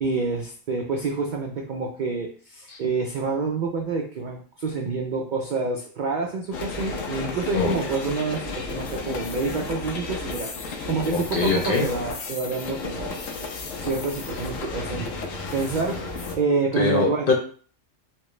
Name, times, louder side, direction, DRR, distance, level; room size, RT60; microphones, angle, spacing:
voice 1, 0.0-17.2, right 4 dB, 75° right, 1 dB, 0.4 m, -28 dB
sound 1, 6.5-16.4, left 3 dB, 85° left, 1.1 m, -33 dB
voice 2, 11.1-11.9 16.8-17.3, left 4 dB, 55° left, 1 dB, 0.6 m, -22 dB
4.3 x 2.1 x 3.1 m, 0.42 s
omnidirectional pair, 1.3 m